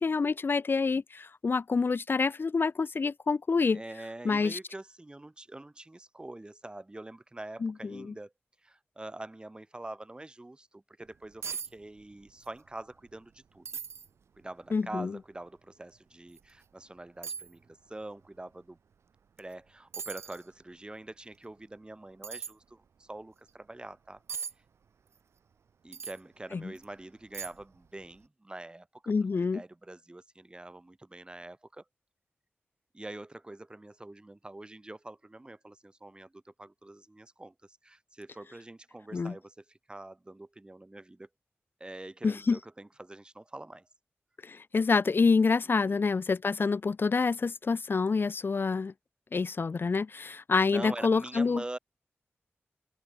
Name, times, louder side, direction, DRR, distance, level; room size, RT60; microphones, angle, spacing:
voice 1, 0.0-3.8 4.2-4.6 7.6-8.1 14.7-15.1 26.5-26.6 29.1-29.6 39.1-39.3 42.2-42.6 44.4-48.9 49.3-51.6, left 4 dB, 55° left, 1.1 m, -27 dB
voice 2, 3.7-8.3 8.6-13.7 14.4-18.8 19.4-24.2 25.8-29.1 29.5-31.8 32.9-41.3 41.8-43.9 45.6-46.0 50.7-51.8, right 2 dB, 20° right, 2.3 m, -45 dB
sound 1, 11.1-11.2 11.4-11.7 12.0-12.5 12.9-13.0 13.6-14.1 14.7-14.8 16.3-16.4 17.2-17.5 19.4-19.5 19.9-20.4 22.2-22.5 24.3-24.5 25.9-26.2 26.8-26.9 27.3-27.7 28.0-28.2, right 6 dB, 85° right, 2.8 m, -39 dB
open air
wide cardioid pair, 80°, 4 cm